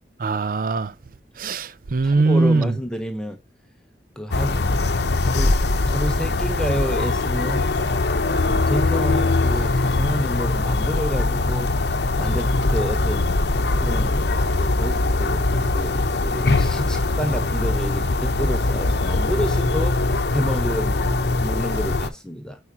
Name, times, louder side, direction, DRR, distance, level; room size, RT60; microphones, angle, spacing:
voice 1, 0.2-0.9 1.4-2.7, right 3 dB, 50° right, 0.5 m, -20 dB
voice 2, 2.0-3.4 4.2-4.6 5.2-7.7 8.4-11.7 12.2-13.3 13.8-22.6, equal, 5° left, 0.9 m, -29 dB
sound 1, 4.3-22.1, left 2 dB, 65° left, 0.8 m, -21 dB
8.7 x 4.8 x 2.8 m
head